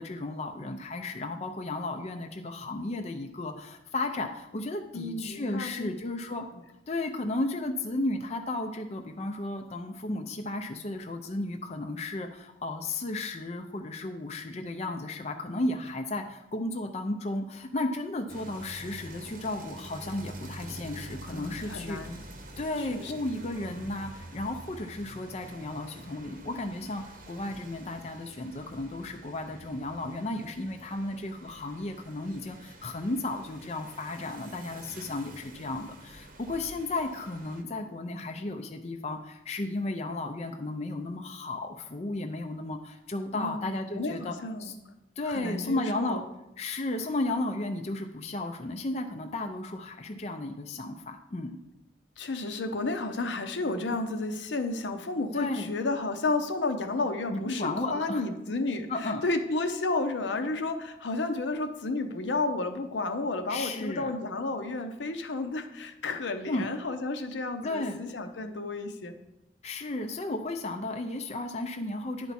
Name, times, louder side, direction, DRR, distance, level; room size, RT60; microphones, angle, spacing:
voice 1, 0.0-6.5 6.9-22.2 22.6-44.3 44.6-44.8 45.2-46.2 46.6-51.6 55.3-55.7 57.3-58.3 58.9-59.2 63.5-64.2 66.5-66.7 67.6-68.0 69.6-72.3, left 2 dB, 35° left, 4 dB, 0.5 m, -34 dB
voice 2, 4.9-5.9 21.3-22.2 22.9-23.1 43.3-44.7 45.3-46.2 52.2-69.1, left 2 dB, 80° left, 7 dB, 0.8 m, -32 dB
sound 1, 18.3-37.6, right 2 dB, 50° right, 0.9 m, -47 dB
10.5 x 4.5 x 4.2 m, 0.91 s
head